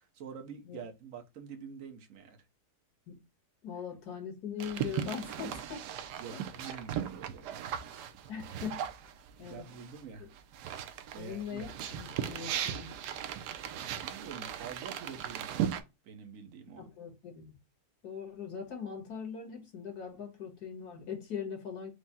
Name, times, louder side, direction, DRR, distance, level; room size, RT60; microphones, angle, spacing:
voice 1, 0.0-2.4 6.2-7.6 9.4-10.3 11.1-12.1 13.6-16.9, right 6 dB, 60° right, 1.2 m, -47 dB
voice 2, 3.6-5.9 6.3-6.8 8.3-8.8 9.4-9.7 10.2-10.3 11.1-12.9 16.8-17.5 18.0-21.9, left 7 dB, 75° left, 1.7 m, -41 dB
sound 1, 4.6-10.0 10.3-15.8, right 9 dB, 85° right, 1.2 m, -38 dB
4.8 x 2.1 x 4.0 m
omnidirectional pair, 1.7 m